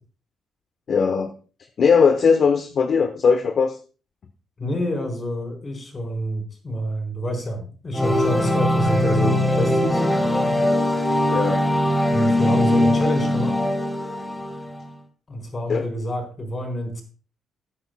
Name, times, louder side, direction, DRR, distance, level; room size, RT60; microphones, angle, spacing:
voice 1, 0.9-1.3 1.8-3.8 11.3-11.6 15.7-15.9, left 5 dB, 55° left, 7 dB, 1.0 m, -19 dB
voice 2, 4.6-10.0 12.1-13.6 15.3-17.0, equal, 35° left, 4 dB, 4.5 m, -27 dB
sound 1, 7.9-14.8, left 1 dB, 10° left, 3.3 m, -21 dB
17.0 x 9.7 x 2.3 m, 0.37 s
cardioid pair, 90°, 0 cm